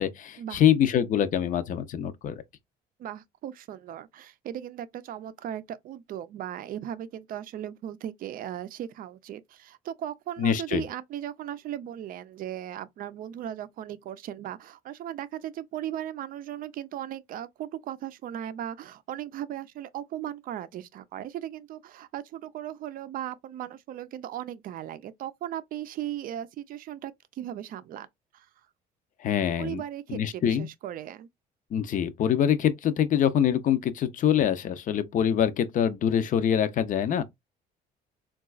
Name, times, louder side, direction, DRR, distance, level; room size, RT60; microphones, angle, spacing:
voice 1, 0.0-2.4 10.4-10.8 29.2-29.8 30.1-30.7 31.7-37.2, left 9 dB, 50° left, 0.5 m, -24 dB
voice 2, 3.0-28.1 28.3-28.5 29.6-31.3, right 11 dB, 55° right, 0.4 m, -37 dB
3.8 x 2.3 x 2.3 m
cardioid pair, 110°, 17 cm